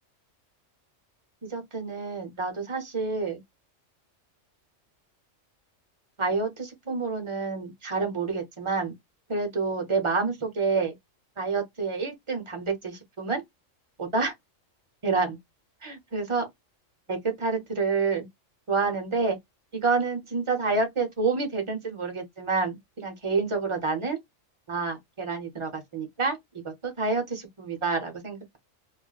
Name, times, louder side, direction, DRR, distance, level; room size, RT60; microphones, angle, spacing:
voice 1, 1.4-3.4 6.2-8.9 9.3-11.0 11.4-13.4 14.0-14.3 15.0-15.4 15.8-16.5 17.1-18.3 18.7-19.4 19.7-24.2 24.7-26.4 26.6-28.6, right 4 dB, 30° right, 0.8 m, -28 dB
2.4 x 2.1 x 3.9 m
omnidirectional pair, 1.3 m